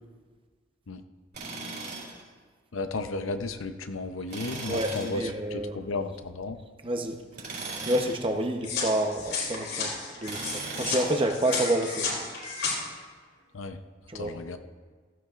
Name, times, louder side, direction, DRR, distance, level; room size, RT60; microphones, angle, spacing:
Tools, 1.3-2.2 4.3-5.2 7.3-8.2 10.2-11.2, right 3 dB, 50° right, 4.6 m, -37 dB
voice 1, 2.7-6.6 13.5-13.8 14.1-14.6, left 3 dB, 90° left, 8 dB, 0.8 m, -34 dB
voice 2, 4.7-5.8 6.8-7.2 7.8-12.1 14.1-14.3, right 1 dB, 25° right, 4 dB, 0.9 m, -28 dB
sound 1, 8.6-12.8, left 4 dB, 65° left, 4.3 m, -32 dB
15.5 x 15.5 x 2.5 m, 1.5 s
head